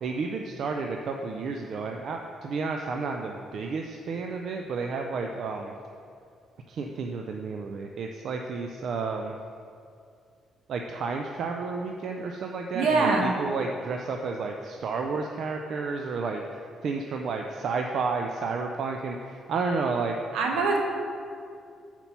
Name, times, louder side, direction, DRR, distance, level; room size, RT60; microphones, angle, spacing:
voice 1, 0.0-5.7 6.7-9.4 10.7-16.4 16.8-20.1, right 4 dB, 65° right, 3 dB, 0.4 m, -31 dB
voice 2, 12.7-13.3 20.3-20.8, right 3 dB, 85° right, 0 dB, 1.0 m, -23 dB
5.7 x 4.3 x 5.4 m, 2.4 s
cardioid pair, 90°, 0 cm